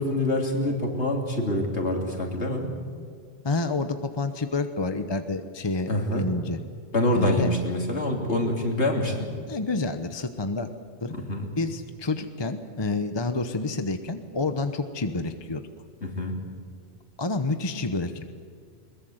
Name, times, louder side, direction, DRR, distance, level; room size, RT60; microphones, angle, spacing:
voice 1, 0.0-2.7 5.9-6.3 6.9-9.3 11.1-11.5 16.0-16.4, left 1 dB, 80° left, 1 dB, 3.5 m, -26 dB
voice 2, 3.4-6.6 7.1-7.5 9.5-10.7 11.0-11.1 11.6-15.6 17.2-18.3, left 3 dB, 25° left, 8 dB, 0.9 m, -29 dB
22.0 x 21.0 x 8.0 m, 2.2 s
omnidirectional pair, 1.1 m